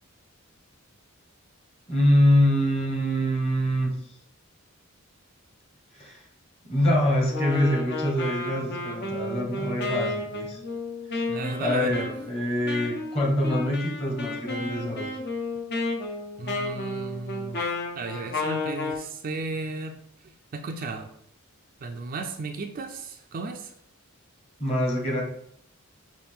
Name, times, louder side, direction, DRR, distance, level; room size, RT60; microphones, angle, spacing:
voice 1, 1.9-3.9 6.0-6.2 6.6-10.6 11.1-11.2 11.6-15.1 24.6-25.2, left 1 dB, 30° left, -1 dB, 1.2 m, -24 dB
Wind instrument woodwind instrument, 7.3-19.0, left 2 dB, 50° left, 0.7 m, -32 dB
voice 2, 11.3-12.0 16.4-17.6 18.0-20.0 20.5-21.1 21.8-23.7, right 3 dB, 40° right, 5 dB, 0.4 m, -34 dB
5.6 x 2.5 x 3.5 m, 0.69 s
head